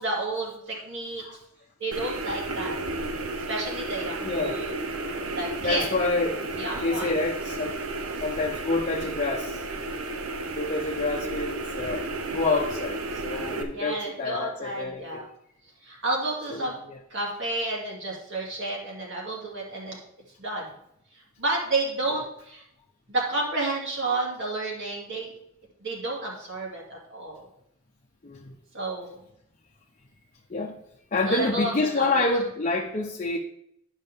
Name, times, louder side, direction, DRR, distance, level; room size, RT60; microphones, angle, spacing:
voice 1, 0.0-1.2 1.8-2.8 3.5-4.8 5.3-5.9 6.5-7.1 13.7-15.3 15.8-16.8 17.1-20.0 20.4-20.7 21.4-22.6 23.1-25.3 25.8-27.4 28.7-29.2 31.3-32.3, right 2 dB, 60° right, -3 dB, 2.6 m, -31 dB
sound 1, 1.9-13.6, right 2 dB, 80° right, 0.9 m, -33 dB
voice 2, 4.2-4.6 5.0-5.2 5.6-6.5 6.8-7.8 8.2-9.7 10.5-15.3 16.5-17.0 22.1-22.2 28.2-28.5 30.5-30.8 31.1-33.4, left 3 dB, 35° left, 0 dB, 0.7 m, -28 dB
11.5 x 5.4 x 3.6 m, 0.74 s
head